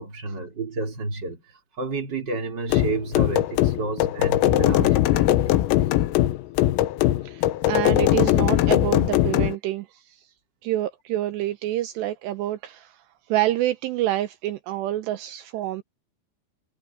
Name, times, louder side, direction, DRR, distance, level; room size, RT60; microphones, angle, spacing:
voice 1, 0.0-1.4 1.7-5.6, right 3 dB, 25° right, 3.3 m, -30 dB
sound 1, 2.7-9.6, left 14 dB, 80° left, 3.8 m, -20 dB
voice 2, 7.2-10.2 10.6-13.0 13.3-15.8, right 14 dB, 85° right, 2.5 m, -27 dB
omnidirectional pair, 5.9 m